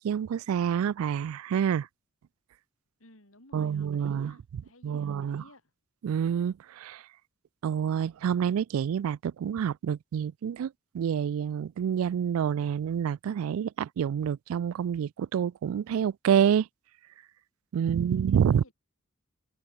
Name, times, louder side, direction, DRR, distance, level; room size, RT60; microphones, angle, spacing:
voice 1, 0.0-1.9 3.5-4.3 4.8-5.4 6.0-7.0 7.6-16.7 17.7-18.6, right 8 dB, 80° right, 0.3 m, -28 dB
voice 2, 3.0-5.7 17.8-18.7, left 1 dB, 70° left, 5.1 m, -57 dB
head